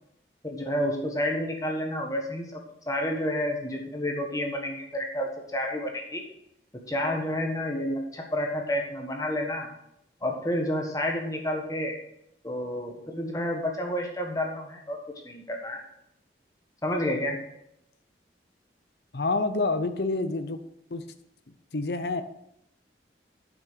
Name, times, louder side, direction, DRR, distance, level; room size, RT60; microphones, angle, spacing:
voice 1, 0.4-2.6 2.9-6.2 6.9-9.7 10.2-12.0 12.4-15.0 15.2-15.8 16.8-17.4, left 1 dB, 20° left, 1 dB, 1.4 m, -30 dB
voice 2, 19.1-20.6 20.9-21.0 21.7-22.2, left 3 dB, 65° left, 9 dB, 0.7 m, -27 dB
8.9 x 6.1 x 6.8 m, 0.78 s
head